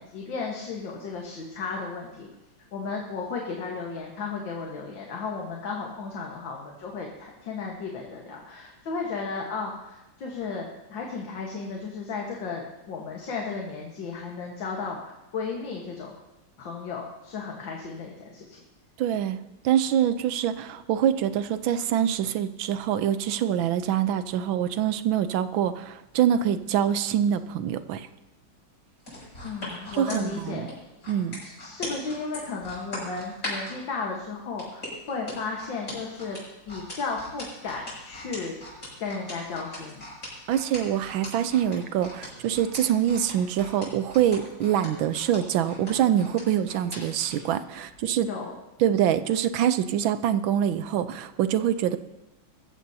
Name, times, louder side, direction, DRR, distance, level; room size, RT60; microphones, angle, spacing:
voice 1, 0.0-2.3 2.7-16.1 16.6-18.6 29.4-30.7 31.4-36.4 36.7-38.6 39.0-40.0 48.3-48.5, left 4 dB, 70° left, -1 dB, 2.1 m, -34 dB
voice 2, 19.0-19.4 19.6-28.1 29.9-30.7 31.1-31.4 40.5-48.3 48.8-52.0, right 10 dB, 80° right, 12 dB, 1.5 m, -25 dB
sound 1, 29.0-33.8 34.6-47.4 47.8-48.0, left 1 dB, 45° left, 7.2 m, -39 dB
20.5 x 14.5 x 2.8 m, 0.97 s
omnidirectional pair, 2.2 m